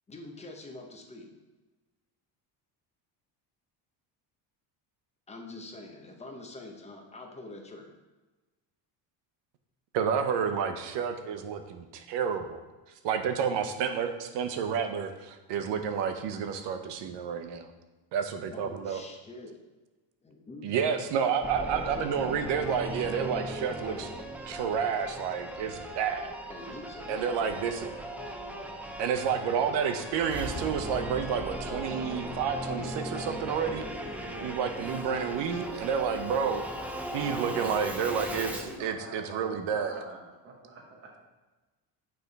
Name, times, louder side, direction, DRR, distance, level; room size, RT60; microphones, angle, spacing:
voice 1, 0.1-1.3 5.3-7.9 18.5-19.6 20.2-20.7 26.5-27.7, left 2 dB, 15° left, 2 dB, 0.7 m, -45 dB
voice 2, 9.9-12.6 13.0-17.7 18.1-19.0 20.6-24.1 24.5-26.3 27.1-27.9 29.0-33.8 34.4-36.6 37.1-40.0, right 7 dB, 80° right, 7 dB, 0.8 m, -30 dB
Singing / Musical instrument, 21.4-38.8, equal, 5° right, 0.4 m, -38 dB
voice 3, 38.3-41.2, right 2 dB, 30° right, -1 dB, 1.2 m, -46 dB
8.8 x 3.4 x 4.0 m, 1.2 s
cardioid pair, 140°, 42 cm